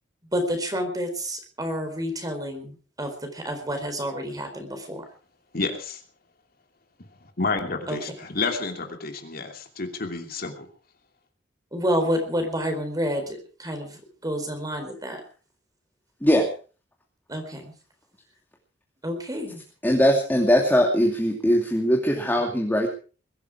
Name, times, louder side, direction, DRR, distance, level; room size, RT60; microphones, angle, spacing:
voice 1, 0.2-5.1 7.9-8.3 11.7-15.2 17.3-17.7 19.0-19.6, equal, 20° right, 6 dB, 4.4 m, -29 dB
voice 2, 5.5-6.0 7.4-8.0 8.4-10.7, left 3 dB, 55° left, 4 dB, 2.9 m, -29 dB
voice 3, 19.8-22.9, equal, 10° left, 0 dB, 2.6 m, -20 dB
21.5 x 13.5 x 4.8 m, 0.39 s
head